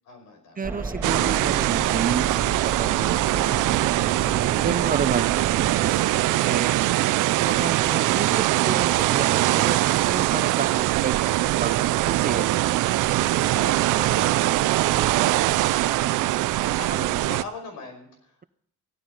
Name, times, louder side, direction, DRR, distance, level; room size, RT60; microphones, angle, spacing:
voice 1, 0.0-0.6 7.3-7.6 13.5-14.2 15.3-15.4 16.8-18.5, left 3 dB, 85° left, 5 dB, 5.6 m, -40 dB
sound 1, 0.6-5.9, right 2 dB, 10° right, 2.3 m, -34 dB
voice 2, 0.6-4.2 4.6-5.3 5.6-6.7 7.4-12.8 13.3-14.3 14.9-15.4, right 6 dB, 30° right, 14 dB, 0.7 m, -31 dB
sound 2, 1.0-17.4, right 16 dB, 90° right, 0.6 m, -22 dB
16.5 x 13.0 x 4.0 m, 0.68 s
cardioid pair, 90°, 30 cm